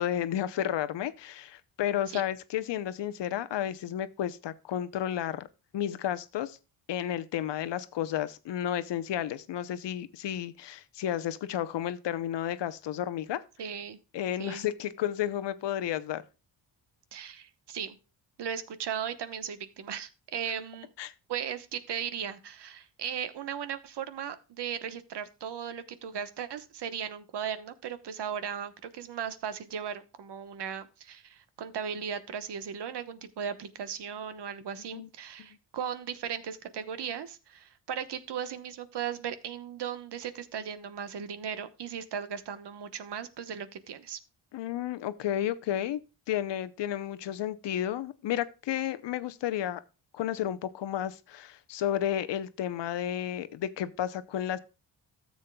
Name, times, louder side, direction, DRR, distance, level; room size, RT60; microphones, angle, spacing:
voice 1, 0.0-5.5 5.7-6.6 6.9-13.4 14.1-16.2 21.0-21.1 34.9-35.1 44.5-46.0 46.3-49.8 50.1-54.6, left 11 dB, 65° left, 0.8 m, -32 dB
voice 2, 13.6-14.0 14.4-14.7 17.1-18.0 18.4-20.9 21.3-44.2, right 8 dB, 60° right, 1.1 m, -37 dB
13.5 x 7.3 x 2.2 m
cardioid pair, 75°, 45 cm